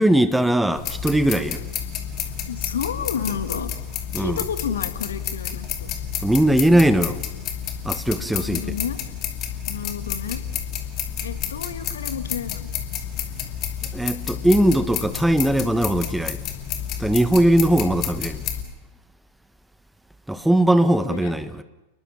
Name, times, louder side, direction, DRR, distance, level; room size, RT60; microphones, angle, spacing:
voice 1, 0.0-1.6 4.1-4.4 6.2-7.2 7.8-8.7 13.9-16.4 17.0-18.4 20.3-21.6, right 1 dB, 5° right, 1.2 m, -19 dB
sound 1, 0.7-18.6, left 9 dB, 35° left, 2.6 m, -30 dB
voice 2, 2.5-3.7 4.1-5.9 8.3-9.0 9.7-10.4 11.2-12.7 20.3-20.7 21.1-21.3, left 7 dB, 65° left, 1.5 m, -31 dB
29.5 x 21.0 x 5.8 m
figure-of-eight pair, 90°, 0 cm